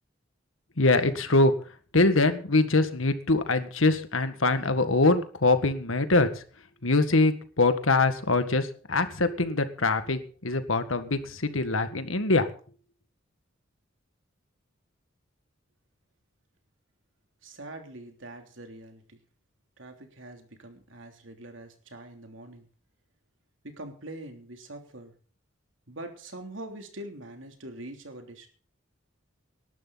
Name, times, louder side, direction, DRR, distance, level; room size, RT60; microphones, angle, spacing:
voice 1, 0.8-1.5 1.9-6.3 6.8-12.5, left 2 dB, 85° left, 10 dB, 1.8 m, -23 dB
voice 2, 17.4-19.2 19.8-22.6 23.6-25.1 25.9-28.5, right 1 dB, 75° right, 4 dB, 3.3 m, -43 dB
19.5 x 12.0 x 4.1 m, 0.42 s
head